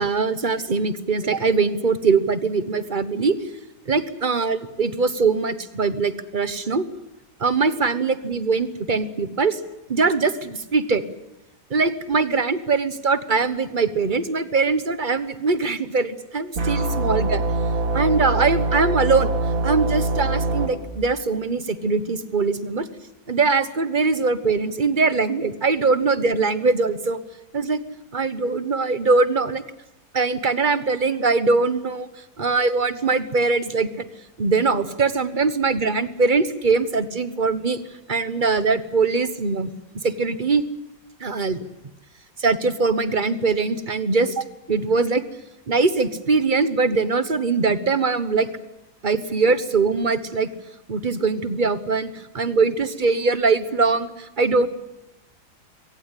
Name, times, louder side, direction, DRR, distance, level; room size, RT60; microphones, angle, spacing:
voice 1, 0.0-3.4 3.9-6.9 7.4-9.6 9.9-11.0 11.7-17.4 17.9-19.3 19.6-22.9 23.3-27.2 27.5-27.8 28.1-29.6 30.1-32.1 32.4-34.0 34.4-37.8 38.1-39.7 40.0-40.6 41.2-41.6 42.4-45.2 45.7-48.5 49.0-50.5 50.9-54.7, right 4 dB, 30° right, 13 dB, 1.1 m, -22 dB
sound 1, 16.5-20.7, right 2 dB, 85° right, 3.5 m, -23 dB
22.5 x 18.0 x 9.8 m, 0.93 s
omnidirectional pair, 2.0 m